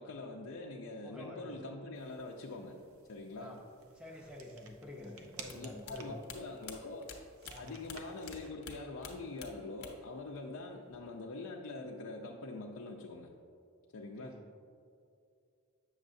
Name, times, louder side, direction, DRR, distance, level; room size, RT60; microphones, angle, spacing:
voice 1, 0.0-2.8 3.1-3.6 5.5-7.1 7.6-13.3 13.9-14.4, left 2 dB, 85° left, -1 dB, 0.5 m, -44 dB
voice 2, 1.0-1.6 3.4-3.6 3.9-6.4 7.5-7.8 14.2-14.5, left 1 dB, 5° right, 0 dB, 0.6 m, -49 dB
sound 1, 1.9-8.5, right 5 dB, 85° right, 0.6 m, -55 dB
sound 2, 5.4-8.4 8.6-10.2 10.4-11.2, left 6 dB, 55° left, 0.7 m, -49 dB
7.8 x 6.4 x 2.6 m, 2.4 s
head